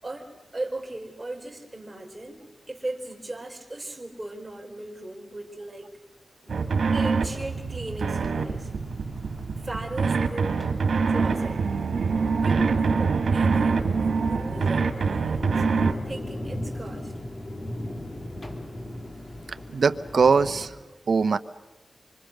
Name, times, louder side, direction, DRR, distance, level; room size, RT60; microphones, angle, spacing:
voice 1, 0.0-5.9 6.9-8.7 9.6-10.7 11.1-11.6 12.3-17.1, right 2 dB, 15° right, 1 dB, 4.5 m, -37 dB
sound 1, 6.5-20.7, left 1 dB, 40° left, 2.6 m, -39 dB
sound 2, 6.5-15.9, right 4 dB, 85° right, 2.0 m, -25 dB
voice 2, 19.7-20.7 21.1-21.4, right 5 dB, 70° right, 12 dB, 0.9 m, -21 dB
26.5 x 25.0 x 6.7 m, 1.1 s
wide cardioid pair, 105°, 0 cm